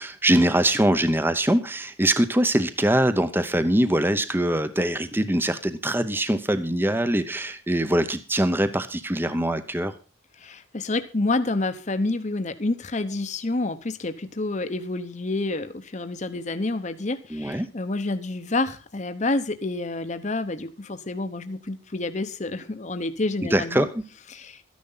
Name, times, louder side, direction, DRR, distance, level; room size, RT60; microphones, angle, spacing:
voice 1, 0.0-9.9 17.3-17.7 23.4-24.0, right 1 dB, 10° right, 11 dB, 0.8 m, -23 dB
voice 2, 10.4-23.8 24.3-24.6, left 2 dB, 35° left, 9 dB, 0.9 m, -28 dB
13.5 x 10.5 x 5.6 m, 0.34 s
head